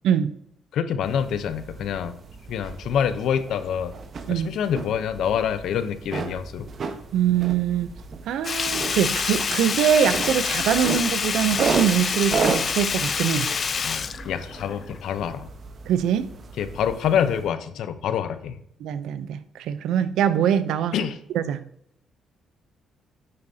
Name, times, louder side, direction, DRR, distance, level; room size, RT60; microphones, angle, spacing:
voice 1, 0.0-0.3 4.3-4.5 7.1-7.9 8.3-13.6 15.9-16.3 18.8-21.0 21.3-21.6, right 9 dB, 85° right, 13 dB, 0.6 m, -23 dB
voice 2, 0.7-2.1 2.5-3.9 4.3-6.7 13.8-15.5 16.6-18.6 20.9-21.2, left 8 dB, 75° left, 11 dB, 0.8 m, -26 dB
sound 1, 1.0-17.5, right 5 dB, 50° right, 1.1 m, -34 dB
Sink (filling or washing), 8.4-15.0 15.3-15.4, left 6 dB, 45° left, 0.5 m, -27 dB
9.7 x 8.7 x 2.8 m, 0.72 s
cardioid pair, 90°, 0 cm